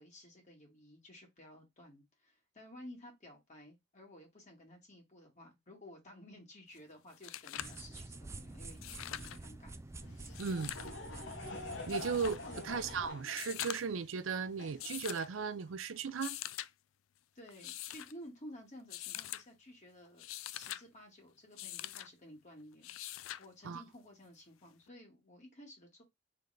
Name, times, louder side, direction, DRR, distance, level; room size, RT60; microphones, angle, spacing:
voice 1, 0.0-9.8 11.9-12.0 12.5-12.8 17.4-23.0 23.4-26.0, left 1 dB, 40° left, 1.8 m, -54 dB
sound 1, 6.8-6.9 7.1-7.8 8.7-9.4 10.2-10.9 11.9-12.4 13.3-14.0 14.8-15.3 16.1-16.7 17.5-18.1 18.9-19.4 20.1-20.8 21.6-22.1 22.8-23.5 24.9-25.0, left 13 dB, 90° left, 0.3 m, -43 dB
sound 2, 7.6-13.1, right 2 dB, 15° right, 0.3 m, -48 dB
Laughter / Crowd, 10.0-15.7, left 3 dB, 70° left, 1.0 m, -46 dB
voice 2, 10.4-10.7 11.9-12.4 12.6-16.4 23.6-23.8, right 5 dB, 85° right, 0.5 m, -36 dB
3.9 x 3.4 x 3.2 m
head